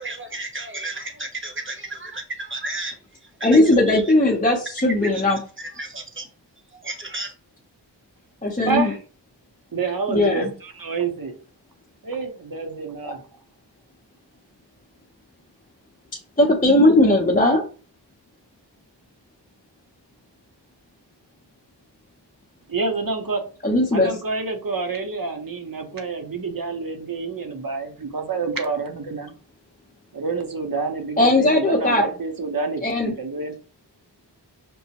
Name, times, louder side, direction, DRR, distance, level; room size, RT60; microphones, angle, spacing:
voice 1, 0.0-2.9 3.4-3.6 3.9-4.0 5.1-5.2 5.6-6.3 6.7-7.3, right 2 dB, 30° right, 4 dB, 1.0 m, -33 dB
voice 2, 3.4-5.4 8.4-8.9 10.1-10.5 13.0-13.1 16.4-17.6 23.6-24.1 31.2-32.0 32.8-33.1, left 1 dB, 20° left, -1 dB, 0.7 m, -18 dB
voice 3, 8.7-9.0 9.7-11.3 12.0-13.2 22.7-23.4 23.9-29.3 30.1-32.8 33.2-33.6, right 4 dB, 50° right, 5 dB, 0.8 m, -28 dB
5.3 x 2.1 x 2.8 m, 0.38 s
wide cardioid pair, 50°, 43 cm